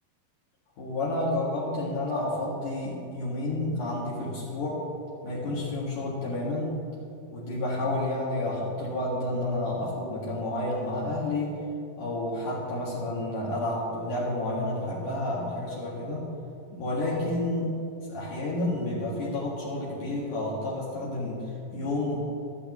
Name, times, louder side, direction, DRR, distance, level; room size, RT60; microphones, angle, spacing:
voice 1, 0.8-4.8 5.2-6.8 7.3-11.6 12.0-16.2 16.7-17.7 18.0-22.2, left 2 dB, 65° left, -6 dB, 3.3 m, -30 dB
16.5 x 12.5 x 3.1 m, 2.5 s
omnidirectional pair, 4.1 m